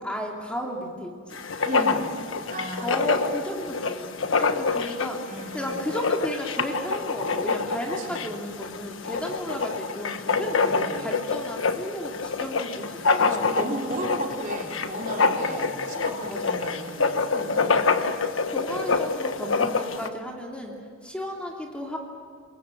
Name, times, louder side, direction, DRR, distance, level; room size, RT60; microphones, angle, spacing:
voice 1, 0.0-1.4 2.8-5.2 5.5-13.5 15.3-16.5 17.3-17.8 18.5-20.8 21.0-22.0, equal, 5° left, -1 dB, 2.8 m, -34 dB
Writing, 1.3-20.1, left 4 dB, 80° left, 1.4 m, -26 dB
voice 2, 1.7-2.2 2.5-3.1 5.2-5.9 8.0-8.3 10.6-11.1 13.2-17.8 18.7-18.9, right 1 dB, 45° right, 0 dB, 4.0 m, -35 dB
27.5 x 22.5 x 7.7 m, 2.1 s
head